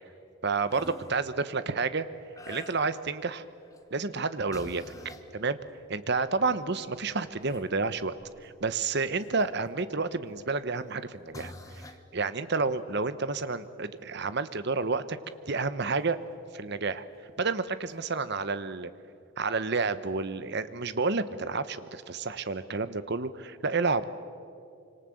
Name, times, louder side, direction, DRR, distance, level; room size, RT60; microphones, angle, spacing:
voice 1, 0.4-2.1 2.5-3.4 3.9-4.8 5.3-5.6 5.9-8.1 8.4-11.5 12.1-15.2 15.5-16.2 16.5-17.0 17.4-18.9 19.4-24.0, right 4 dB, 50° right, 13 dB, 1.0 m, -30 dB
sound 1, 0.7-1.2 2.4-3.1 3.6-3.9 4.5-5.3 6.2-6.3 6.7-9.8 10.8-11.0 11.3-12.0 15.3-15.4 17.1-17.2 17.9-18.0, left 1 dB, 15° left, 1.3 m, -47 dB
26.0 x 25.5 x 7.8 m, 2.5 s
head